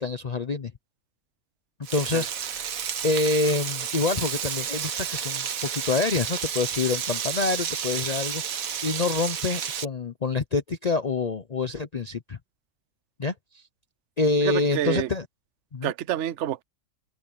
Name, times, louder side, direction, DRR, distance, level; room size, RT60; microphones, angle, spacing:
voice 1, 0.0-0.7 1.9-2.7 3.0-5.5 5.7-12.4 13.2-13.6 14.2-15.2 15.7-15.9, left 3 dB, 35° left, 0.8 m, -27 dB
Frying (food), 1.8-9.8, right 8 dB, 90° right, 1.5 m, -31 dB
voice 2, 14.4-15.1 15.8-16.6, right 12 dB, 65° right, 0.9 m, -28 dB
omnidirectional pair, 1.4 m